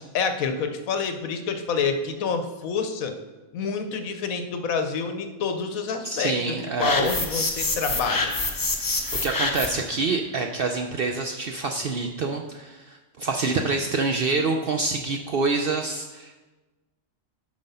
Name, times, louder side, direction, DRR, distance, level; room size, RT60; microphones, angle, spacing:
voice 1, 0.1-3.1 3.5-6.4 6.8-8.3, left 5 dB, 80° left, 8 dB, 1.2 m, -27 dB
voice 2, 6.0-7.1 9.2-16.5, right 3 dB, 65° right, 4 dB, 0.6 m, -26 dB
sound 1, 6.8-9.9, left 3 dB, 25° left, 0.5 m, -27 dB
7.4 x 5.4 x 5.5 m, 1.2 s
omnidirectional pair, 1.5 m